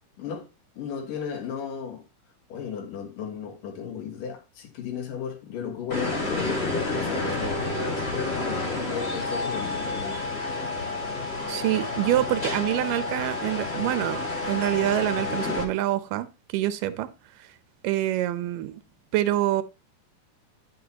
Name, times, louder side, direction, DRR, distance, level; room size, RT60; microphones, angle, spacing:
voice 1, 0.8-2.0 2.5-10.3, left 7 dB, 90° left, 3.3 m, -34 dB
sound 1, 5.9-15.6, left 2 dB, 20° left, 2.0 m, -30 dB
voice 2, 11.5-17.1 17.8-18.8 19.1-19.6, right 13 dB, 85° right, 2.4 m, -26 dB
11.5 x 6.5 x 2.9 m
omnidirectional pair, 3.7 m